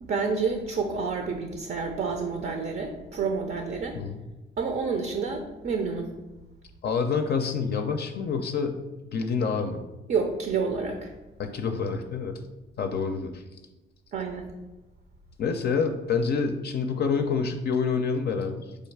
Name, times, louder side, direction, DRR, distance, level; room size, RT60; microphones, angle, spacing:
voice 1, 0.0-4.0 4.6-6.1 10.1-11.1 14.1-14.5, right 5 dB, 50° right, 5 dB, 0.5 m, -29 dB
voice 2, 6.8-8.8 9.1-9.8 11.4-12.3 12.8-13.4 15.4-18.7, left 5 dB, 55° left, 5 dB, 0.5 m, -27 dB
4.9 x 2.3 x 4.6 m, 1.1 s
cardioid pair, 90°, 20 cm